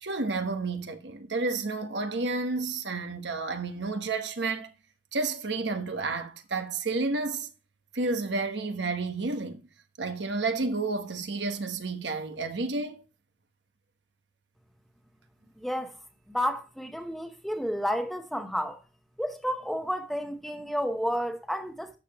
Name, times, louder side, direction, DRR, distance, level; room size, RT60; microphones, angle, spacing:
voice 1, 0.0-4.7 5.1-7.5 7.9-9.6 10.0-13.0, right 3 dB, 75° right, 1.2 m, -31 dB
voice 2, 15.6-15.9 16.3-18.8 19.2-21.9, equal, ahead, 1.0 m, -31 dB
12.5 x 6.8 x 3.0 m
head